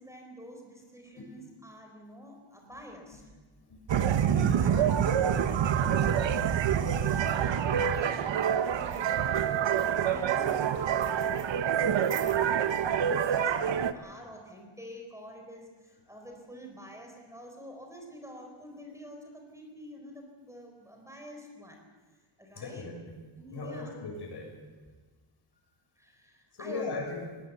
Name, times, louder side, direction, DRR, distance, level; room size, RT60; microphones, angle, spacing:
voice 1, 0.0-3.2 4.0-9.6 10.1-21.8 22.4-22.9 23.4-24.0 26.0-26.9, equal, 5° right, 2 dB, 4.0 m, -48 dB
voice 2, 3.7-4.0 4.3-4.8 6.3-6.4 22.5-23.1 23.5-24.5 26.5-27.2, left 3 dB, 55° left, 2 dB, 6.7 m, -38 dB
sound 1, 3.9-13.9, right 8 dB, 65° right, 1.2 m, -27 dB
21.0 x 19.5 x 8.1 m, 1.3 s
wide cardioid pair, 145°, 49 cm